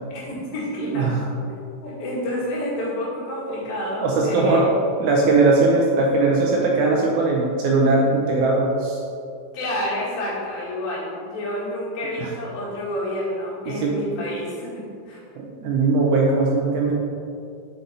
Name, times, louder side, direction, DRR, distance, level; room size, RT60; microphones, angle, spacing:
voice 1, 0.1-4.7 9.5-15.2, left 1 dB, 75° left, -7 dB, 3.5 m, -29 dB
voice 2, 4.0-4.7 5.0-9.0 12.2-12.3 13.7-14.0 15.4-16.9, right 3 dB, 80° right, -2 dB, 1.9 m, -19 dB
6.4 x 5.1 x 4.1 m, 2.4 s
omnidirectional pair, 4.1 m